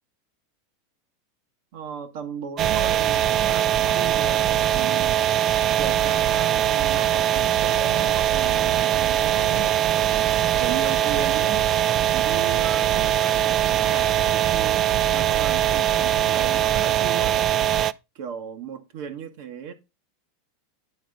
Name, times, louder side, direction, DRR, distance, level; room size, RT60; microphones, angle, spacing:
voice 1, 1.7-5.2 5.8-9.7 10.6-11.7 12.1-17.5 18.1-19.7, right 7 dB, 65° right, 1.1 m, -36 dB
sound 1, 2.6-17.9, right 11 dB, 40° right, 0.3 m, -21 dB
9.3 x 3.4 x 5.1 m
hypercardioid pair, 110°, 0 cm